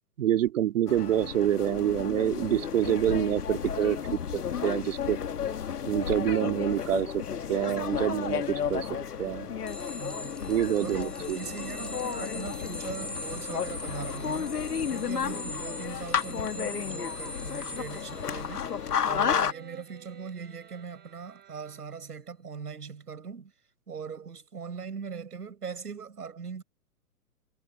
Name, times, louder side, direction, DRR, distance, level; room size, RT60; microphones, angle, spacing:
voice 1, 0.2-5.2 5.8-7.2 7.5-9.5 10.5-11.4, right 11 dB, 55° right, 2.5 m, -27 dB
sound 1, 0.9-19.5, left 7 dB, 75° left, 1.8 m, -32 dB
sound 2, 9.7-21.8, left 1 dB, ahead, 3.9 m, -43 dB
voice 2, 10.0-10.4 10.8-14.6 14.9-18.7 19.1-23.5 23.9-26.6, right 6 dB, 75° right, 7.2 m, -40 dB
sound 3, 12.7-22.2, right 13 dB, 20° right, 7.1 m, -54 dB
figure-of-eight pair, 125°, 47 cm